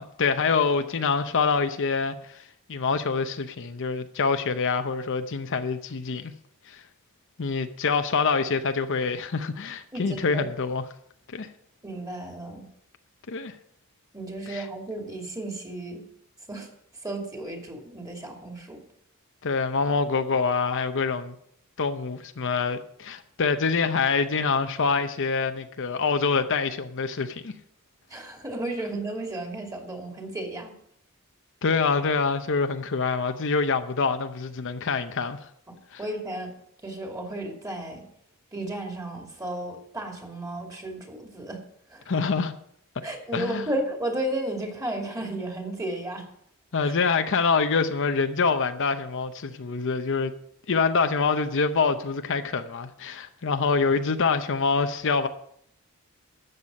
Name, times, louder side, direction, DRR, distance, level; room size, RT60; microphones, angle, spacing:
voice 1, 0.0-2.4 2.7-6.3 6.7-6.8 7.4-10.8 11.3-11.5 13.3-13.6 14.5-14.7 19.4-21.3 21.8-27.5 31.6-35.5 35.9-36.0 42.1-42.5 43.3-43.7 46.7-50.3 50.7-55.3, left 4 dB, 60° left, 0.7 m, -25 dB
voice 2, 9.9-10.5 11.8-12.7 14.1-16.0 16.5-16.7 17.0-18.8 28.1-30.7 35.7-36.5 36.8-38.0 38.5-41.6 41.9-42.0 43.0-46.3 46.8-46.9, right 1 dB, 15° right, 2.5 m, -33 dB
13.0 x 8.1 x 5.3 m
head